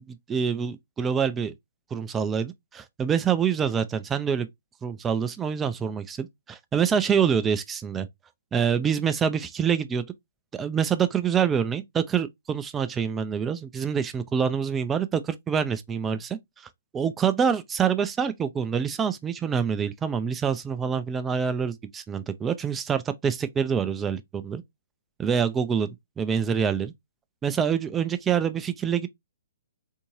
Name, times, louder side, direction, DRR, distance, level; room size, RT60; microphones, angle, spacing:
voice 1, 0.1-1.5 1.9-4.5 4.8-8.1 8.5-10.0 10.5-16.4 16.9-24.6 25.2-25.9 26.2-26.9 27.4-29.1, right 7 dB, 15° right, 0.4 m, -26 dB
3.5 x 2.7 x 2.9 m
figure-of-eight pair, 125°, 0 cm